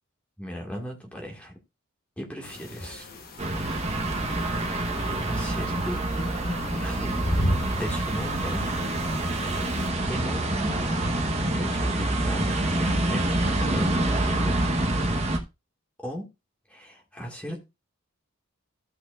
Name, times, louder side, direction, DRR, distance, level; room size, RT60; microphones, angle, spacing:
voice 1, 0.4-1.6 2.2-3.1 5.3-7.2 7.6-8.6 10.1-10.8 11.1-14.6 16.0-16.3 16.7-17.6, equal, 5° left, 1.7 m, -35 dB
sound 1, 2.4-9.9, equal, 45° left, 1.1 m, -35 dB
sound 2, 3.4-15.4, right 1 dB, 30° right, 1.0 m, -26 dB
14.5 x 5.9 x 2.4 m
head